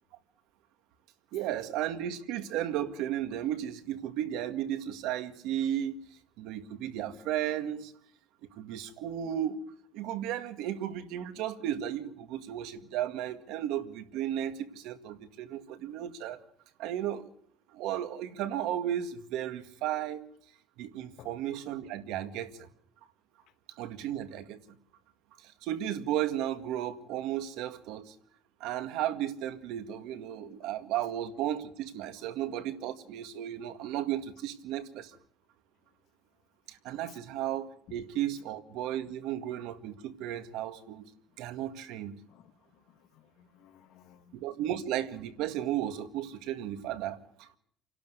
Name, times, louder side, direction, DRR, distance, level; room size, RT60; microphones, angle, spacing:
voice 1, 1.3-6.0 6.4-7.9 8.4-16.4 16.8-17.3 17.7-20.2 20.8-22.7 23.8-24.6 25.4-28.2 28.6-35.2 36.7-41.1 41.4-42.2 44.3-47.6, right 11 dB, 70° right, 1.9 m, -34 dB
voice 2, 42.3-44.5, left 12 dB, 60° left, 1.4 m, -58 dB
28.5 x 12.0 x 8.1 m
cardioid pair, 150°, 0 cm